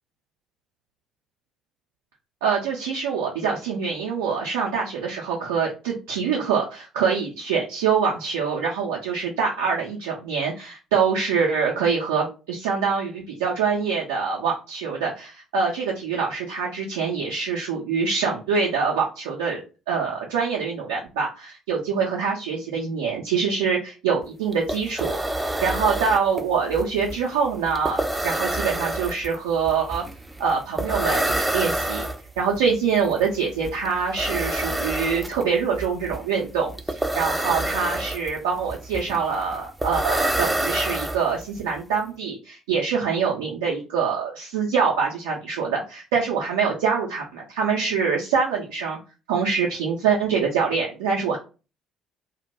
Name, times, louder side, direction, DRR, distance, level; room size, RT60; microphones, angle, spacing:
voice 1, 2.4-19.6 19.9-25.2 25.6-30.0 30.4-32.1 32.4-49.0 49.3-51.4, right 6 dB, 75° right, -1 dB, 0.4 m, -25 dB
sound 1, 24.2-24.3 24.5-41.6, right 1 dB, 10° right, 0.4 m, -28 dB
2.1 x 2.1 x 2.8 m, 0.32 s
figure-of-eight pair, 50°, 0 cm